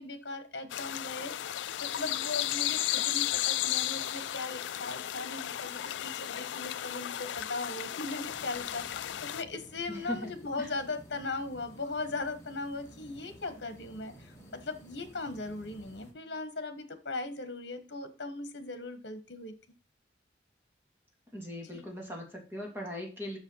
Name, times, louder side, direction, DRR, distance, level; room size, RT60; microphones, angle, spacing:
voice 1, 0.0-19.5 21.7-21.8, left 3 dB, 65° left, 9 dB, 1.3 m, -39 dB
sound 1, 0.7-9.4, left 13 dB, 80° left, 0.4 m, -34 dB
sound 2, 8.2-16.1, equal, 15° left, 2.5 m, -53 dB
voice 2, 9.9-10.3 10.6-10.7 21.3-23.4, left 1 dB, 15° right, -1 dB, 2.8 m, -39 dB
7.3 x 6.2 x 5.6 m, 0.32 s
head